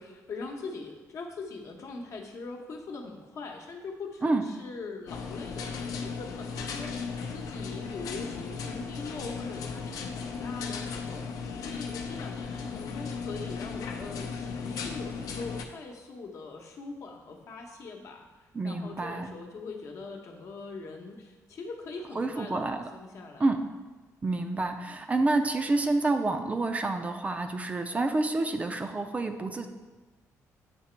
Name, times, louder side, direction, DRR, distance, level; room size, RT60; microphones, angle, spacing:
voice 1, 0.0-23.5, left 3 dB, 55° left, 2 dB, 0.9 m, -42 dB
sound 1, 5.1-15.6, left 5 dB, 80° left, 0.6 m, -36 dB
voice 2, 18.5-19.3 22.2-22.8 23.4-23.6 24.2-29.7, right 2 dB, 25° right, 6 dB, 0.4 m, -28 dB
8.5 x 2.9 x 4.4 m, 1.2 s
cardioid pair, 115°, 6 cm